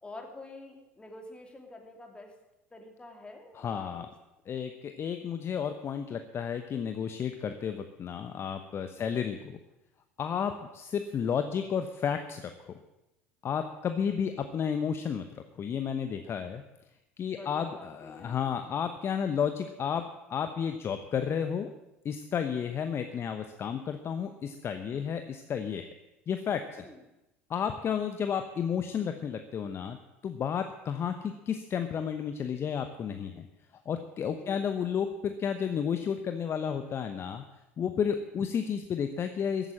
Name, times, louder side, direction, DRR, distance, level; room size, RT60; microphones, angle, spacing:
voice 1, 0.0-2.3 2.7-4.1 10.4-10.6 17.3-18.6 24.9-25.2 26.8-27.0 34.3-34.6, left 2 dB, 15° left, 2 dB, 3.0 m, -48 dB
voice 2, 3.5-4.1 4.5-9.6 10.2-12.7 13.4-16.6 17.2-20.0 20.3-21.7 22.0-25.9 26.3-26.9 27.5-30.0 30.2-33.5 33.9-37.4 37.8-39.7, left 7 dB, 35° left, 8 dB, 0.9 m, -32 dB
14.5 x 9.1 x 7.5 m, 0.95 s
figure-of-eight pair, 70°, 7 cm